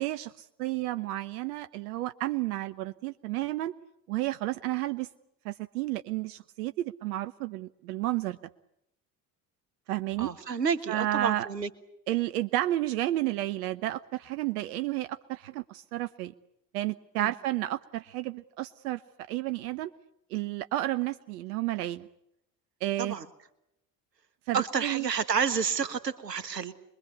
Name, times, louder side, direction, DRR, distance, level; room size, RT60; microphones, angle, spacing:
voice 1, 0.0-3.7 4.1-5.1 5.4-8.4 9.9-10.3 10.9-11.5 12.1-16.3 16.7-19.9 20.3-22.1 22.8-23.1 24.5-25.1, right 15 dB, 65° right, 12 dB, 1.0 m, -31 dB
voice 2, 10.2-11.7 17.2-17.3 23.0-23.3 24.5-26.7, right 6 dB, 85° right, 13 dB, 1.5 m, -30 dB
25.5 x 22.5 x 8.2 m, 0.80 s
figure-of-eight pair, 55°, 48 cm